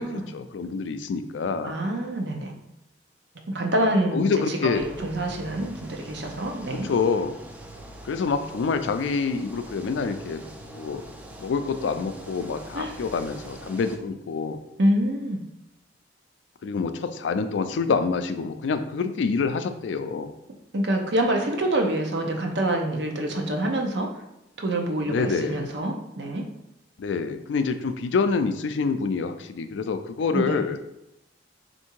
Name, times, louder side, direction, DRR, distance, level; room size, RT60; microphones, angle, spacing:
voice 1, 0.0-1.8 4.1-4.9 6.8-7.4 8.0-10.4 10.7-11.0 11.4-14.6 16.6-20.3 25.0-25.7 27.0-30.8, left 5 dB, 85° left, 9 dB, 0.4 m, -26 dB
voice 2, 1.6-2.5 3.5-6.9 12.7-12.9 14.8-15.4 20.7-24.1 24.6-26.4 30.3-30.6, right 1 dB, 65° right, 2 dB, 0.7 m, -26 dB
sound 1, 4.7-14.0, right 1 dB, 10° right, 0.3 m, -43 dB
3.6 x 2.6 x 4.4 m, 0.88 s
head